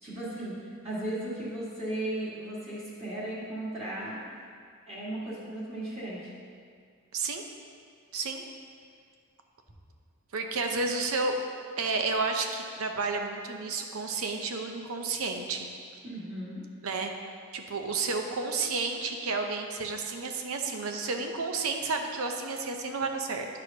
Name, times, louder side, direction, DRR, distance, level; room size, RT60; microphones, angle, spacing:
voice 1, 0.0-0.6 0.8-4.2 4.9-6.3 16.0-16.6, right 1 dB, 30° right, -9 dB, 1.7 m, -36 dB
voice 2, 7.1-7.4 8.1-8.4 10.3-11.4 11.8-15.7 16.8-17.1 17.5-23.5, right 3 dB, 85° right, 4 dB, 0.6 m, -31 dB
9.6 x 6.2 x 2.8 m, 2.1 s
head